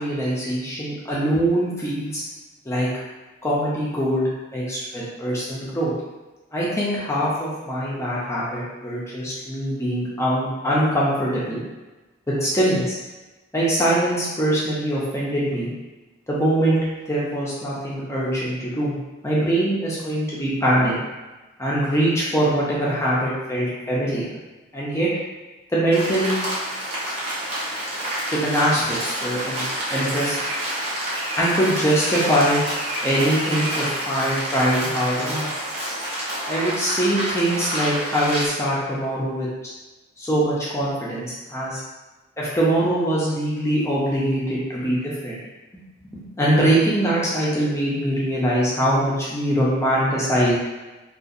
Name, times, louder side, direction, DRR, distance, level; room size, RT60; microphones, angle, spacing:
voice 1, 0.0-2.2 2.7-2.9 3.4-4.2 4.5-5.9 6.5-11.6 12.3-13.0 13.5-15.7 16.3-16.8 17.1-18.9 19.2-21.0 21.6-24.3 24.7-25.1 25.7-26.3 28.3-29.6 29.9-30.4 31.4-32.6 33.0-35.5 36.5-39.5 40.2-41.8 42.4-45.4 46.1-50.5, right 1 dB, 15° left, -7 dB, 0.6 m, -22 dB
Rain, 25.9-38.5, right 1 dB, 35° right, 0.7 m, -28 dB
2.7 x 2.4 x 2.5 m, 1.1 s
head